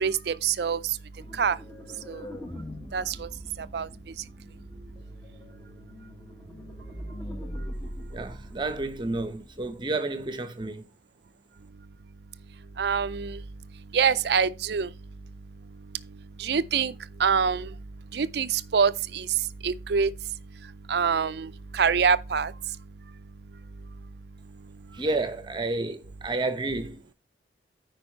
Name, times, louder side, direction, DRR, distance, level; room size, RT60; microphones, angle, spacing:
voice 1, 0.0-0.8 1.4-1.6 2.1-2.2 2.9-3.3 3.7-3.9 12.8-13.4 13.9-14.9 16.4-16.9 17.2-17.7 18.1-19.3 19.6-20.1 20.9-22.5, right 6 dB, 60° right, 0.4 m, -25 dB
sound 1, 1.2-9.9, equal, 15° left, 1.3 m, -42 dB
voice 2, 8.1-10.9 24.9-27.1, right 2 dB, 25° right, 0.8 m, -30 dB
9.7 x 4.7 x 4.4 m
head